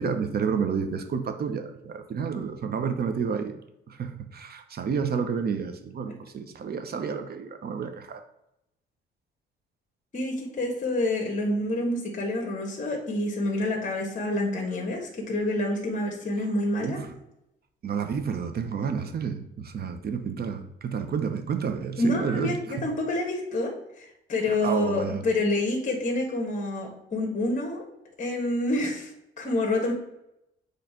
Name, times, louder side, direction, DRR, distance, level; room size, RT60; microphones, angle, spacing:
voice 1, 0.0-3.5 3.9-8.2 16.8-17.1 17.8-22.5 24.4-25.2, right 6 dB, 55° right, 8 dB, 0.9 m, -30 dB
voice 2, 10.1-17.0 22.0-27.8 28.2-29.1 29.4-29.9, left 1 dB, 40° left, 1 dB, 1.5 m, -27 dB
6.7 x 3.3 x 5.8 m, 0.84 s
cardioid pair, 90°, 20 cm